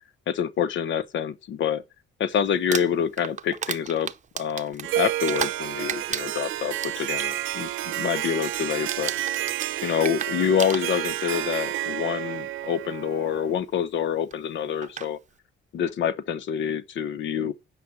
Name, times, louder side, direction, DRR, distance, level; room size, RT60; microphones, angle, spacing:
voice 1, 0.3-1.8 2.2-4.1 4.4-9.1 9.8-15.2 15.7-17.5, left 8 dB, 70° left, 0.7 m, -27 dB
Crumpling crinkling, 2.5-5.6 5.9-7.3 7.7-8.0 8.3-8.6 8.9-11.3 12.2-12.3 14.3-14.4 14.8-15.1, right 7 dB, 40° right, 0.7 m, -33 dB
Harp, 4.8-13.6, right 14 dB, 85° right, 0.8 m, -30 dB
9.1 x 4.9 x 7.4 m
cardioid pair, 90°, 20 cm